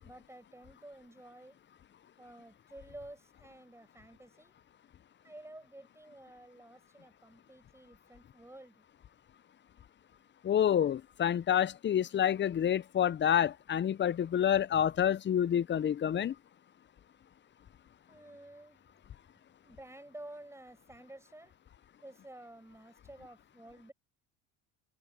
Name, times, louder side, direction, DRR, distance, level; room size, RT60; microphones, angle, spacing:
voice 1, 0.0-1.6 2.2-4.5 5.2-8.8 18.1-18.8 19.3-21.5 22.0-23.9, right 1 dB, 5° right, 6.1 m, -52 dB
voice 2, 10.4-16.4, left 9 dB, 30° left, 0.6 m, -28 dB
supercardioid pair, 85°, 39 cm